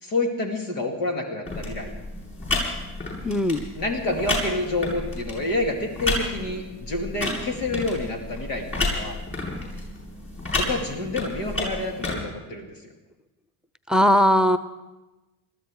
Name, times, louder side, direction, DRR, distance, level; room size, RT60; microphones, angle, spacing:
voice 1, 0.0-2.0 3.7-9.2 10.6-12.7, left 2 dB, 85° left, 2 dB, 2.4 m, -28 dB
sound 1, 1.5-12.2, left 2 dB, 25° left, 7.5 m, -31 dB
voice 2, 3.2-3.7 13.9-14.6, equal, ahead, 11 dB, 0.7 m, -19 dB
21.0 x 14.0 x 4.8 m, 1.1 s
hypercardioid pair, 60°, 47 cm